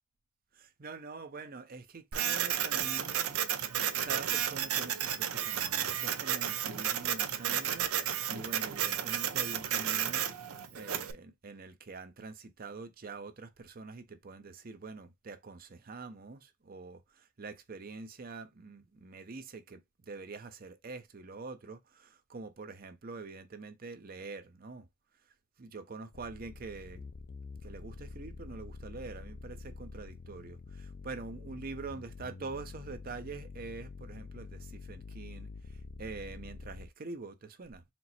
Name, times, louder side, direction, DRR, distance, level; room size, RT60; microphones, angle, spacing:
voice 1, 0.5-3.4 3.8-10.2 10.7-24.9 25.6-27.1 27.6-37.8, right 3 dB, 40° right, 0.6 m, -45 dB
Printer, 2.1-11.1, right 10 dB, 85° right, 0.6 m, -32 dB
sound 1, 26.1-36.9, left 4 dB, 45° left, 0.4 m, -47 dB
4.4 x 2.0 x 4.0 m
head